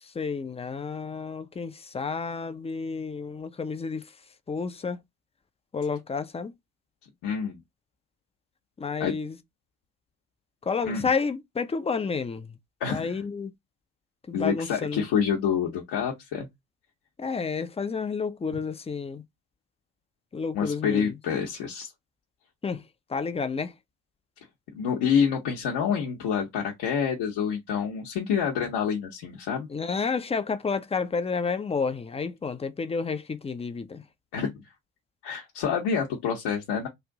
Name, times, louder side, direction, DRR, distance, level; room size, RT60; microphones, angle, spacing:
voice 1, 0.1-4.0 4.5-5.0 5.7-6.5 8.8-9.4 10.7-12.5 12.9-13.5 14.3-15.1 17.2-19.2 20.3-21.2 22.6-22.8 23.1-23.7 29.7-34.0, left 5 dB, 15° left, 0.4 m, -30 dB
voice 2, 7.2-7.6 9.0-9.1 10.8-11.1 12.8-13.1 14.3-16.5 20.5-21.9 24.7-29.7 34.3-34.5 35.2-36.9, left 7 dB, 60° left, 0.8 m, -27 dB
3.1 x 2.5 x 3.5 m
figure-of-eight pair, 40°, 46 cm